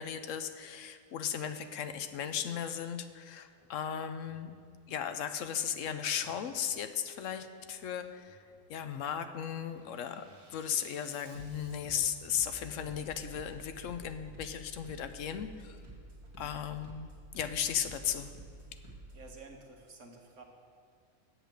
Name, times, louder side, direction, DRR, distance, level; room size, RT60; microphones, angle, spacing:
voice 1, 0.0-4.5 4.9-8.4 8.7-10.2 10.5-15.8 16.4-17.1 17.3-18.3, left 8 dB, 75° left, 10 dB, 0.9 m, -36 dB
Bass drum, 3.5-3.8 4.2-4.7 5.5-5.8 6.2-6.7 7.5-7.8 8.2-8.7 9.1-19.4, right 2 dB, 20° right, 2.2 m, -52 dB
voice 2, 19.1-20.4, right 3 dB, 65° right, 2 dB, 1.5 m, -51 dB
8.0 x 6.7 x 7.6 m, 2.2 s
omnidirectional pair, 1.4 m